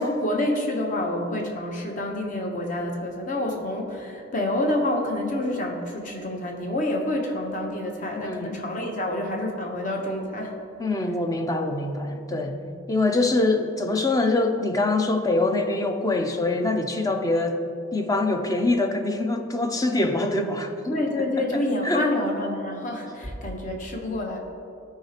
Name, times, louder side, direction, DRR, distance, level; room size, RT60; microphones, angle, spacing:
voice 1, 0.0-10.6 12.5-12.7 20.9-24.4, left 1 dB, 40° left, 2 dB, 0.8 m, -28 dB
voice 2, 8.1-8.5 10.8-12.5 12.9-17.6 17.9-21.0 21.8-22.1, left 2 dB, 15° left, 6 dB, 0.4 m, -24 dB
13.5 x 4.8 x 2.9 m, 2.6 s
head